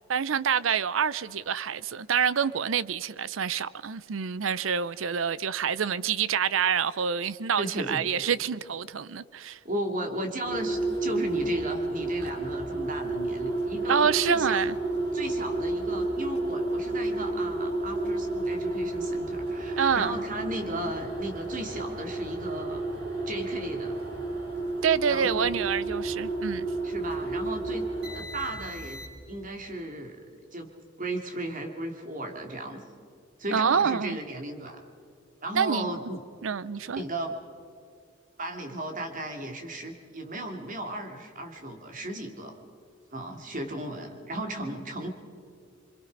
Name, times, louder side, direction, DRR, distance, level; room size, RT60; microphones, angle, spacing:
voice 1, 0.1-9.6 13.9-14.8 19.8-20.1 24.8-26.7 33.5-34.2 35.5-35.9 36.4-37.0, right 7 dB, 85° right, 0.6 m, -27 dB
voice 2, 7.6-8.0 9.6-14.6 15.1-22.8 23.3-23.9 25.1-25.5 26.8-29.0 29.3-30.2 30.5-30.7 31.0-32.8 33.4-34.8 35.4-36.2 37.0-37.3 38.4-42.5 43.1-45.1, right 1 dB, 45° right, 2.7 m, -35 dB
sound 1, 10.4-29.4, right 2 dB, 60° right, 6.1 m, -31 dB
27.0 x 24.5 x 5.3 m
head